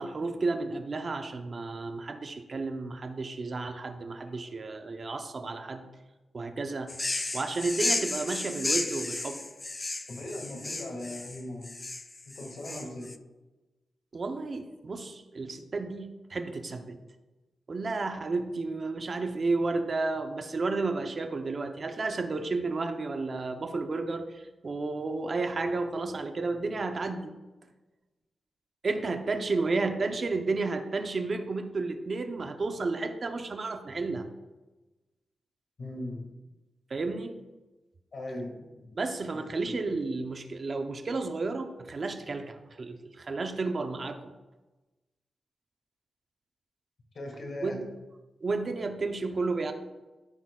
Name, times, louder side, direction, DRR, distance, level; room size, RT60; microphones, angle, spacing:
voice 1, 0.0-5.8 6.3-7.0 7.3-9.4 12.7-12.9 14.1-17.0 17.7-27.3 28.8-34.3 36.9-37.4 39.0-44.3 47.6-47.9 48.4-49.7, right 3 dB, 45° right, 6 dB, 0.7 m, -32 dB
sound 1, 6.9-13.2, left 2 dB, 25° left, 0.3 m, -33 dB
voice 2, 10.1-11.7 12.3-13.1 35.8-36.3 38.1-38.8 39.3-39.8 47.1-47.8, left 1 dB, 55° left, 1 dB, 2.0 m, -39 dB
13.5 x 6.0 x 2.4 m, 1.1 s
wide cardioid pair, 100°, 0 cm